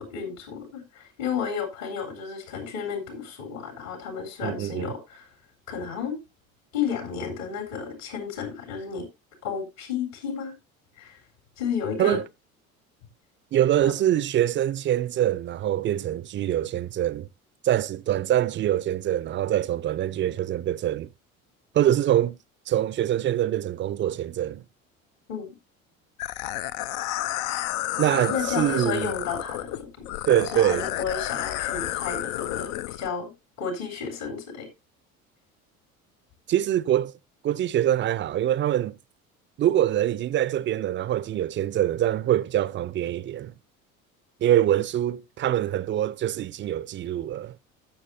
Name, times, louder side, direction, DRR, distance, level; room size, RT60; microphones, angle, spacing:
voice 1, 0.0-5.3 5.7-6.2 6.7-9.1 9.4-10.5 11.0-11.2 11.6-12.2 13.8-13.9 25.3-25.5 28.3-30.0 30.5-33.3 33.6-34.7, left 6 dB, 65° left, 3.9 m, -32 dB
voice 2, 4.4-4.9 12.0-12.2 13.5-17.3 17.6-21.1 21.7-22.4 22.7-24.6 28.0-29.1 30.3-30.9 36.5-37.2 37.4-39.0 39.6-43.5 44.4-47.6, right 12 dB, 25° right, 0.6 m, -24 dB
sound 1, 26.2-33.1, left 14 dB, 45° left, 0.6 m, -31 dB
15.5 x 6.9 x 2.6 m
figure-of-eight pair, 60°, 42 cm